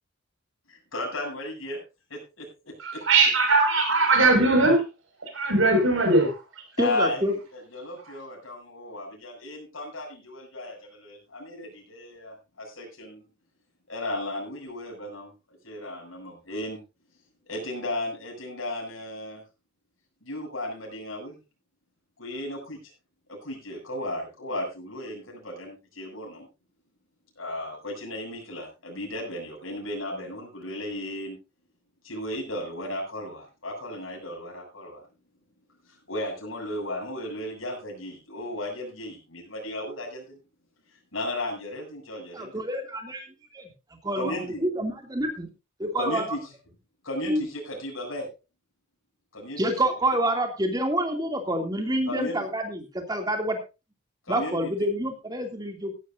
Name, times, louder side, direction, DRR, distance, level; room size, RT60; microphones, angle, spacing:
voice 1, 0.7-1.8 2.1-3.1 6.8-13.3 13.9-16.8 17.5-19.4 20.2-21.4 22.2-22.8 23.3-26.5 27.4-31.4 32.0-35.0 35.8-40.4 41.1-42.6 44.1-44.6 46.0-46.4 47.0-48.3 49.3-49.6 52.0-52.4 54.3-54.7, left 1 dB, 85° left, 7.8 m, -35 dB
voice 2, 2.8-4.8 5.3-6.4, right 3 dB, 80° right, 5.7 m, -20 dB
voice 3, 6.8-7.3 42.4-43.2 43.5-43.6 44.0-45.5 45.8-46.2 47.2-47.4 49.6-53.6 54.3-55.9, right 1 dB, 20° right, 2.7 m, -27 dB
17.0 x 12.0 x 2.7 m
head